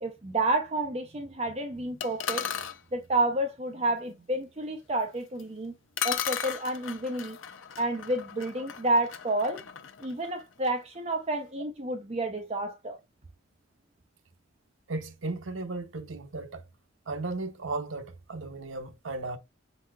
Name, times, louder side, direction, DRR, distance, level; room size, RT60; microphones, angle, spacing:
voice 1, 0.0-2.5 2.9-5.7 6.0-7.4 7.8-9.6 10.0-13.0, right 2 dB, 30° right, 0.6 m, -30 dB
sound 1, 2.0-2.8 5.4-5.5 6.0-10.8, left 9 dB, 80° left, 0.5 m, -36 dB
voice 2, 14.9-16.6 17.1-19.4, right 3 dB, 85° right, 0.8 m, -35 dB
5.5 x 4.0 x 2.3 m
head